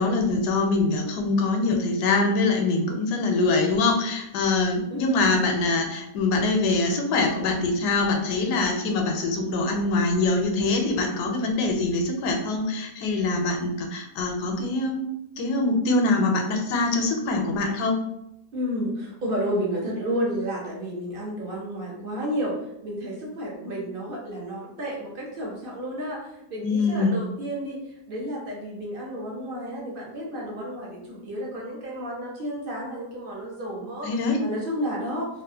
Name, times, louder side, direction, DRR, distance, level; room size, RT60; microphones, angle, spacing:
voice 1, 0.0-15.0 15.4-18.0 26.6-27.2 34.0-34.4, left 3 dB, 80° left, 3 dB, 1.1 m, -24 dB
voice 2, 18.5-22.5 22.8-34.1 34.4-35.3, equal, 45° right, -3 dB, 0.8 m, -31 dB
3.4 x 2.4 x 2.6 m, 0.83 s
omnidirectional pair, 1.8 m